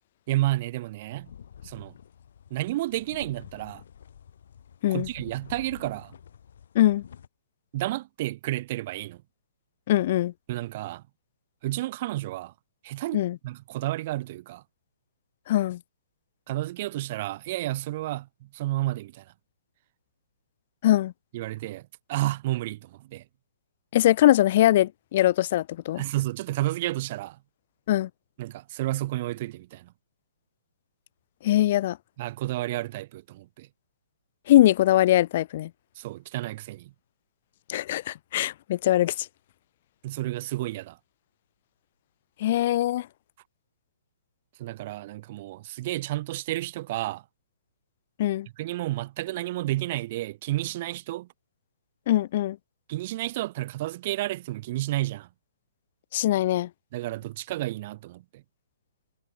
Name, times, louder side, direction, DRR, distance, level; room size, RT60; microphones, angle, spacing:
voice 1, 0.3-1.3 1.6-1.9 2.5-3.8 4.9-6.1 7.7-9.2 10.5-11.0 11.6-12.5 12.8-14.6 16.5-19.2 21.3-23.2 26.0-27.4 28.4-29.9 32.2-33.7 36.0-36.9 40.0-41.0 44.6-47.2 48.6-51.3 52.9-55.3 56.9-58.4, right 16 dB, 40° right, 1.3 m, -31 dB
sound 1, 1.0-7.3, left 8 dB, 65° left, 2.8 m, -49 dB
voice 2, 9.9-10.3 13.1-13.4 15.5-15.8 20.8-21.1 23.9-26.0 27.9-28.1 31.4-32.0 34.5-35.7 37.7-39.3 42.4-43.1 48.2-48.5 52.1-52.6 56.1-56.7, left 14 dB, 45° left, 0.4 m, -22 dB
hypercardioid pair, 155°, 0 cm